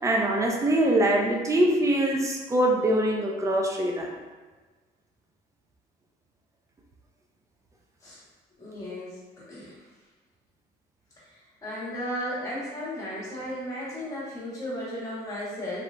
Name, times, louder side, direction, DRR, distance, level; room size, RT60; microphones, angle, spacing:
voice 1, 0.0-4.1, right 1 dB, 20° right, 0 dB, 0.5 m, -23 dB
voice 2, 8.6-9.2 9.5-9.8 11.3-15.8, left 1 dB, 20° left, -7 dB, 1.5 m, -35 dB
3.2 x 2.8 x 2.5 m, 1.3 s
cardioid pair, 110°, 17 cm